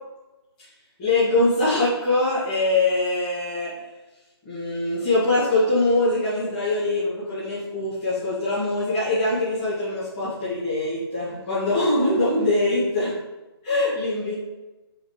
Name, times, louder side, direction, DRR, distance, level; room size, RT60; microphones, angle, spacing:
voice 1, 1.0-3.8 4.4-13.1 13.6-14.3, left 2 dB, 15° left, -13 dB, 2.2 m, -23 dB
4.9 x 4.7 x 5.1 m, 1.1 s
hypercardioid pair, 170°, 14 cm